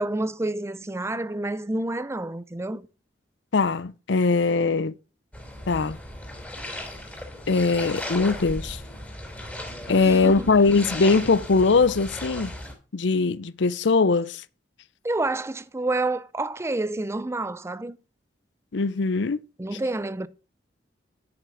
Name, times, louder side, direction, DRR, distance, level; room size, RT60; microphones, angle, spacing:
voice 1, 0.0-2.8 9.9-10.5 15.0-18.0 19.6-20.3, right 2 dB, 15° right, 0.5 m, -28 dB
voice 2, 3.5-4.9 5.7-6.0 7.5-8.8 9.9-12.5 12.9-14.4 18.7-19.4, left 4 dB, 70° left, 0.6 m, -21 dB
sound 1, 5.3-12.7, left 1 dB, 10° left, 3.7 m, -36 dB
10.5 x 5.9 x 6.0 m
head